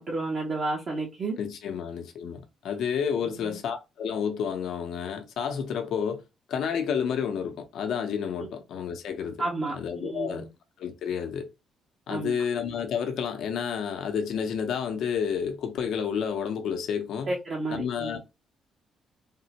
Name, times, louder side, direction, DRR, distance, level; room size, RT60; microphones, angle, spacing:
voice 1, 0.0-1.4 3.3-3.5 9.4-10.5 12.1-12.4 17.3-18.2, right 2 dB, 50° right, 0.8 m, -31 dB
voice 2, 1.4-6.2 6.5-9.4 9.7-10.5 10.8-11.5 12.1-17.4 17.7-18.2, left 7 dB, 75° left, 0.6 m, -30 dB
3.5 x 2.1 x 2.8 m
cardioid pair, 90°, 0 cm